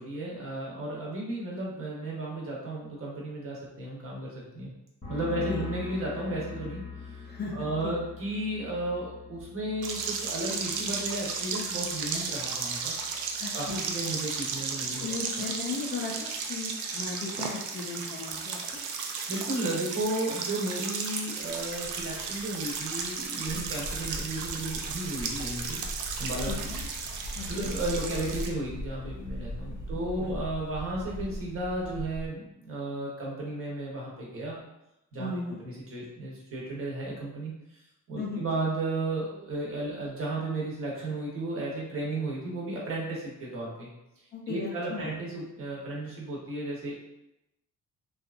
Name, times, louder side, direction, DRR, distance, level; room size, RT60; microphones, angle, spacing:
voice 1, 0.0-4.7 5.1-6.8 7.1-7.2 7.5-13.0 13.5-15.1 19.3-25.8 26.2-26.7 27.5-34.6 35.1-37.5 38.1-43.9 44.5-46.9, right 2 dB, 40° right, -4 dB, 0.9 m, -34 dB
sound 1, 5.0-12.5 12.8-13.3, left 5 dB, 15° left, 0.9 m, -43 dB
voice 2, 7.2-7.9 13.4-13.8 15.0-16.1 16.5-18.6 23.5-23.6 26.5-26.8 27.3-27.7 30.2-30.3 35.2-35.6 38.2-38.4 44.3-45.1, left 4 dB, 30° left, -2 dB, 0.4 m, -36 dB
sound 2, 9.8-28.5, right 5 dB, 65° right, 0.5 m, -34 dB
sound 3, 21.4-32.3, equal, 60° left, 0.7 m, -40 dB
2.8 x 2.3 x 2.4 m, 0.88 s
cardioid pair, 125°, 33 cm